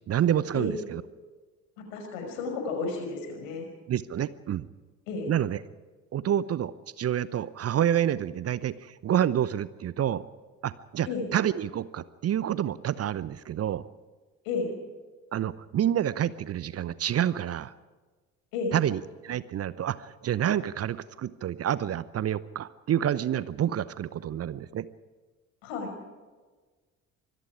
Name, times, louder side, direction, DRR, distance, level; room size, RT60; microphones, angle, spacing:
voice 1, 0.1-1.0 3.9-4.7 5.3-5.6 6.1-10.2 10.6-13.8 15.3-17.7 18.7-24.9, right 10 dB, 35° right, 18 dB, 0.8 m, -28 dB
voice 2, 1.9-3.7 5.1-5.3 11.1-11.2 14.4-14.7 18.5-18.8 25.6-25.9, left 4 dB, 65° left, 4 dB, 5.7 m, -32 dB
26.0 x 21.0 x 4.9 m, 1.3 s
figure-of-eight pair, 55°, 43 cm